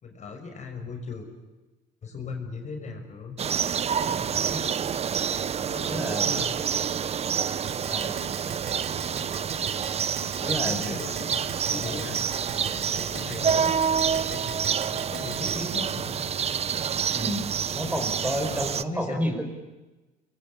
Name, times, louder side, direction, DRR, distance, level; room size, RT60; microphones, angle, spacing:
voice 1, 0.0-1.3 2.0-3.4 4.0-4.5 5.6-6.6 10.4-12.2 12.7-13.7 14.1-14.4 14.9-16.2 17.8-18.1 18.5-19.2, left 4 dB, 45° left, 3 dB, 6.1 m, -38 dB
sound 1, 3.4-18.8, right 7 dB, 40° right, 0.9 m, -28 dB
voice 2, 5.8-6.3 7.9-8.1 10.4-11.1 11.7-12.0 17.0-17.4 17.7-19.4, equal, 10° right, 4 dB, 5.7 m, -31 dB
Keyboard (musical), 7.7-15.5, right 8 dB, 70° right, 3.7 m, -39 dB
27.5 x 22.0 x 8.7 m, 1.1 s
cardioid pair, 110°, 17 cm